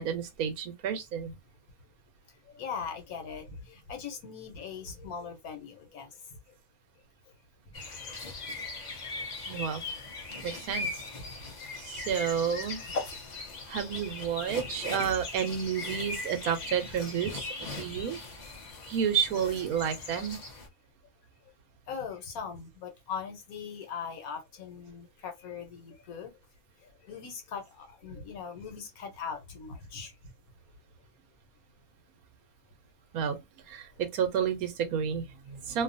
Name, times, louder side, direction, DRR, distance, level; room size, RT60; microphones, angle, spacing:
voice 1, 0.0-1.3 9.5-9.8 10.4-10.9 11.8-12.8 13.7-17.5 17.8-18.2 18.9-20.4 33.1-33.4 33.7-35.8, right 8 dB, 90° right, 1.1 m, -30 dB
voice 2, 2.5-6.1 11.1-11.2 21.9-26.3 27.1-30.1, left 6 dB, 75° left, 1.3 m, -40 dB
sound 1, 7.7-20.7, left 3 dB, 55° left, 0.5 m, -39 dB
2.7 x 2.3 x 2.5 m
omnidirectional pair, 1.5 m